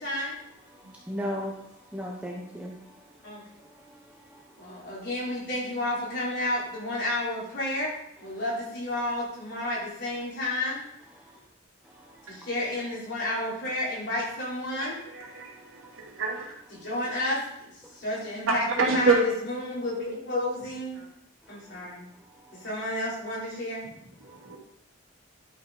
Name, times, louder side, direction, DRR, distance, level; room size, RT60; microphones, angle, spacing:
voice 1, 0.7-3.3 3.6-4.9 8.3-8.4 11.1-11.4 11.8-12.5 15.3-16.2 16.8-16.9 17.8-18.0 21.4-21.7 22.2-22.6 24.2-24.6, equal, 5° right, -2 dB, 1.0 m, -40 dB
voice 2, 4.9-7.9 8.2-10.7 12.5-14.9 16.8-17.4 18.0-18.6 18.9-19.1 19.5-20.9 22.6-23.8, left 1 dB, 55° left, -6 dB, 4.3 m, -30 dB
voice 3, 14.8-16.5 18.5-19.2 21.0-21.1 24.2-24.6, right 4 dB, 80° right, -2 dB, 2.7 m, -27 dB
11.5 x 6.0 x 5.2 m, 0.77 s
head